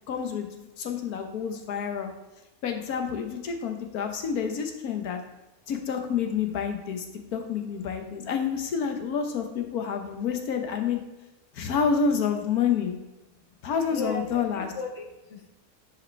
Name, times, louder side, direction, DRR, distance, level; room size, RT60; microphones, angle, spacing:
voice 1, 0.1-2.1 2.6-5.2 5.7-7.1 7.3-11.0 11.5-13.0 13.6-14.7, left 6 dB, 90° left, 5 dB, 1.5 m, -28 dB
voice 2, 13.9-15.5, left 4 dB, 55° left, 3 dB, 1.4 m, -36 dB
10.5 x 5.1 x 3.3 m, 1.0 s
omnidirectional pair, 1.5 m